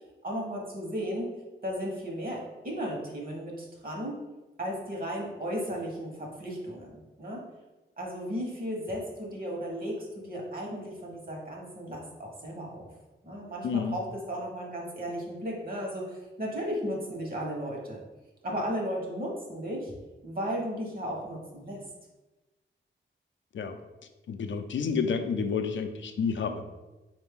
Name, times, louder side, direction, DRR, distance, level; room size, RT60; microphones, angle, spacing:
voice 1, 0.2-1.3 1.6-4.2 4.6-7.5 8.0-12.9 13.2-18.0 18.4-19.9 20.2-21.8, equal, 45° right, -1 dB, 1.2 m, -35 dB
voice 2, 13.6-14.0 23.5-23.8 24.3-26.6, left 6 dB, 70° left, 7 dB, 0.4 m, -29 dB
4.0 x 2.6 x 3.6 m, 1.1 s
cardioid pair, 75°, 20 cm